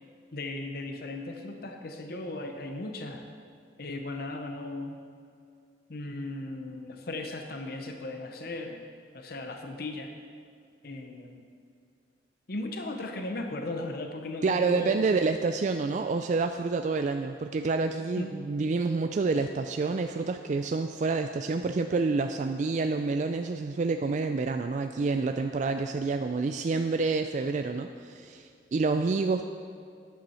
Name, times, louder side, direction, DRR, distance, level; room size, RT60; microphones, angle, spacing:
voice 1, 0.3-3.2 3.8-5.0 5.9-8.8 9.1-10.1 10.8-11.5 12.5-15.2 18.1-18.4, left 2 dB, 55° left, 4 dB, 0.8 m, -37 dB
voice 2, 14.4-29.5, right 4 dB, 45° right, 7 dB, 0.3 m, -28 dB
11.5 x 9.5 x 4.3 m, 2.3 s
head